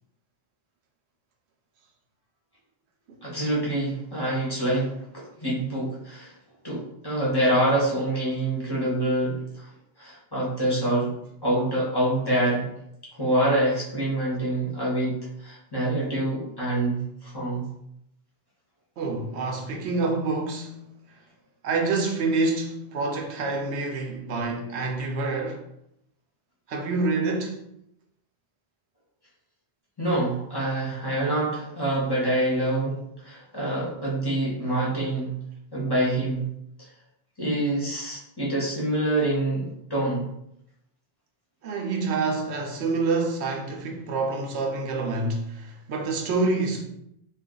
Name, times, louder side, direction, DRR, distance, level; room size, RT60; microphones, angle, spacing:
voice 1, 3.2-6.3 6.6-9.7 10.0-11.1 11.4-12.7 13.2-17.7 30.0-35.3 35.7-36.5 37.4-40.3, right 1 dB, 25° left, 0.9 m, -26 dB
voice 2, 19.0-21.0 21.6-25.6 26.7-27.6 41.6-46.8, right 3 dB, 85° right, 0.9 m, -27 dB
2.4 x 2.4 x 3.7 m
omnidirectional pair, 1.1 m